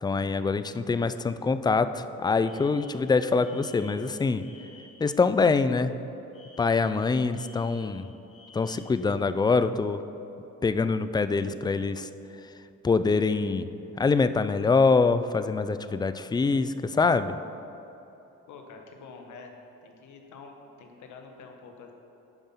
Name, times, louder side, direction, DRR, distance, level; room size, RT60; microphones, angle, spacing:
voice 1, 0.0-4.5 5.0-5.9 6.6-8.1 8.5-10.0 10.6-12.1 12.8-13.7 14.0-17.4, left 4 dB, 15° left, 12 dB, 0.3 m, -24 dB
Alarm, 2.4-5.1 6.3-9.1, left 3 dB, 50° left, 1.6 m, -53 dB
voice 2, 18.5-19.5 19.8-21.9, left 4 dB, 75° left, 3 dB, 1.3 m, -47 dB
10.5 x 5.4 x 5.7 m, 3.0 s
cardioid pair, 90°, 30 cm